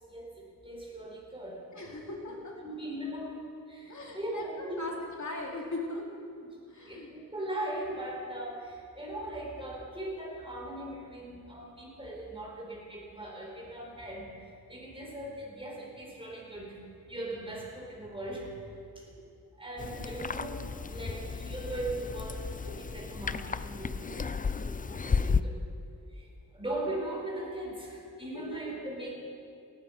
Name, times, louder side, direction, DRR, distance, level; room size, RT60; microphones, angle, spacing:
voice 1, 0.0-1.6 2.6-3.4 3.7-4.9 6.9-16.8 17.1-18.5 19.0-19.1 19.6-20.6 20.9-25.6 26.1-26.3 26.5-29.1, right 1 dB, 15° right, -3 dB, 4.6 m, -39 dB
voice 2, 1.7-2.6 3.9-6.0 6.7-7.1 19.1-19.2 19.9-21.2 28.3-28.6, left 2 dB, 50° left, -1 dB, 3.1 m, -41 dB
sound 1, 19.8-25.4, left 5 dB, 25° left, 0.4 m, -33 dB
18.0 x 12.0 x 5.0 m, 2.4 s
wide cardioid pair, 80°, 36 cm